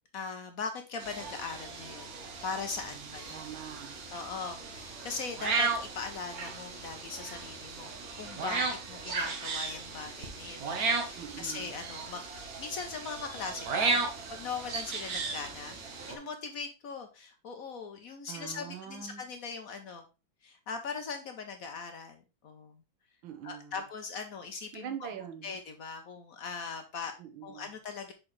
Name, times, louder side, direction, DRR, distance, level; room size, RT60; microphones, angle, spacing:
voice 1, 0.1-2.1 2.4-3.4 4.1-14.0 14.3-15.8 16.1-20.0 20.4-22.8 23.4-25.0 25.4-27.1 27.4-28.1, left 5 dB, 60° left, 0.9 m, -40 dB
sound 1, 1.0-16.2, right 4 dB, 55° right, 1.4 m, -35 dB
voice 2, 2.9-4.0 11.2-11.8 18.3-19.2 23.2-23.8 24.7-25.6 27.2-27.7, right 8 dB, 85° right, 1.7 m, -43 dB
6.2 x 4.9 x 3.1 m
omnidirectional pair, 2.1 m